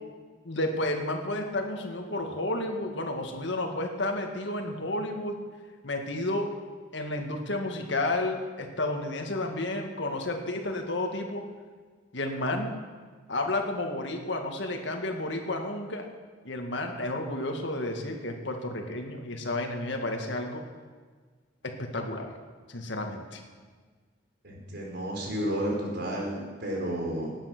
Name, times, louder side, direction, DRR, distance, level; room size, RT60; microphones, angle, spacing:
voice 1, 0.4-5.4 5.8-6.5 6.9-11.4 12.1-12.7 13.3-16.1 16.5-20.6 21.6-22.3 22.7-23.4, left 2 dB, 65° left, 3 dB, 2.0 m, -31 dB
voice 2, 24.4-27.4, right 1 dB, 60° right, -1 dB, 4.0 m, -32 dB
18.0 x 9.0 x 6.2 m, 1.5 s
head